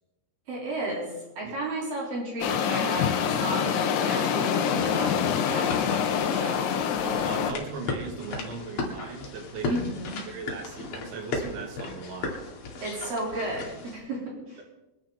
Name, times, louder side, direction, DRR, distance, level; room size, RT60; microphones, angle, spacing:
voice 1, 0.5-6.7 9.7-10.2 12.8-14.2 14.5-14.6, right 2 dB, 50° right, -3 dB, 5.1 m, -34 dB
sound 1, 2.4-7.5, left 8 dB, 80° left, 3.6 m, -25 dB
sound 2, 5.6-14.0, left 3 dB, 55° left, 3.9 m, -36 dB
voice 2, 7.0-9.7 10.3-12.3, right 4 dB, 80° right, 3 dB, 4.6 m, -38 dB
26.5 x 11.0 x 4.0 m, 0.99 s
omnidirectional pair, 5.3 m